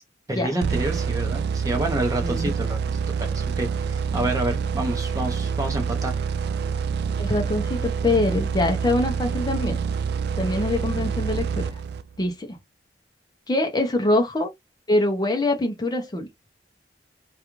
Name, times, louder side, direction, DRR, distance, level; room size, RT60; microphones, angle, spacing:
voice 1, 0.3-6.2, right 1 dB, 20° right, 0.7 m, -28 dB
sound 1, 0.6-12.3, right 6 dB, 65° right, 0.3 m, -27 dB
voice 2, 2.2-2.5 7.2-9.8 10.4-11.7 12.2-12.6 13.5-14.5 14.9-16.3, left 2 dB, 25° left, 0.5 m, -24 dB
2.4 x 2.3 x 2.9 m
head